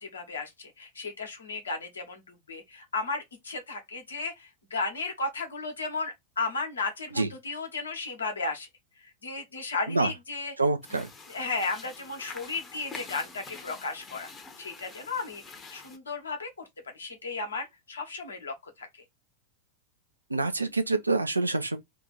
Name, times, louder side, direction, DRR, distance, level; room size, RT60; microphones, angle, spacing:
voice 1, 0.0-8.7 9.2-10.5 11.3-14.3 14.6-16.5 16.9-18.9, left 3 dB, 70° left, 1.1 m, -34 dB
voice 2, 10.6-11.1 20.3-21.8, right 3 dB, 80° right, 0.5 m, -26 dB
sound 1, 10.8-16.0, left 4 dB, 20° left, 0.8 m, -46 dB
2.8 x 2.5 x 4.1 m
figure-of-eight pair, 90°, 0 cm